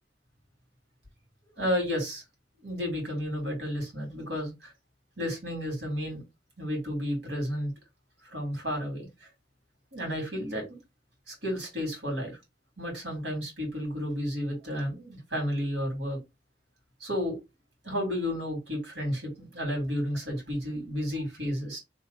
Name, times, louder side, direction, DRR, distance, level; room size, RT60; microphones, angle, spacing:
voice 1, 1.6-2.2 2.6-4.7 5.2-6.2 6.6-7.7 8.2-9.3 9.9-10.8 11.3-12.4 12.8-16.2 17.0-17.4 17.8-21.8, equal, 70° right, 2.7 m, -32 dB
3.5 x 3.0 x 3.9 m
head